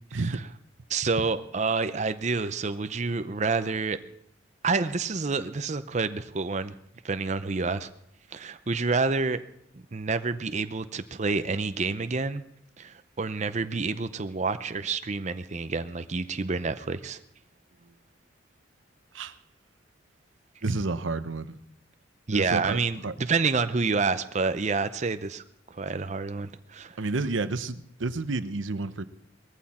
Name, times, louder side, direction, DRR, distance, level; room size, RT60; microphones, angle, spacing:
voice 1, 0.1-0.4 19.1-19.4 20.6-21.6 22.3-22.8 23.0-23.1 27.0-29.0, right 3 dB, 85° right, 13 dB, 0.8 m, -30 dB
voice 2, 0.9-4.0 4.6-6.7 7.0-7.9 8.3-9.4 9.7-12.4 12.8-17.2 22.3-25.4 25.7-27.0, right 4 dB, 40° right, 11 dB, 0.6 m, -28 dB
19.5 x 14.5 x 4.3 m, 0.73 s
head